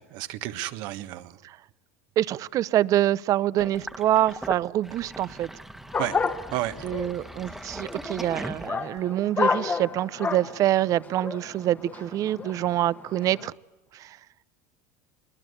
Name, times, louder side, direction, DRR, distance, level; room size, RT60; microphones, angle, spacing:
voice 1, 0.0-1.4 6.0-6.2 6.5-6.8, right 15 dB, 65° right, 10 dB, 1.4 m, -32 dB
voice 2, 2.2-5.5 6.8-13.5 13.9-14.2, right 13 dB, 45° right, 20 dB, 0.7 m, -25 dB
Sink (filling or washing), 3.6-9.2, right 1 dB, 5° right, 1.3 m, -39 dB
sound 1, 5.9-13.5, left 5 dB, 20° left, 1.3 m, -31 dB
22.5 x 20.0 x 8.2 m, 1.1 s
supercardioid pair, 120°, 8 cm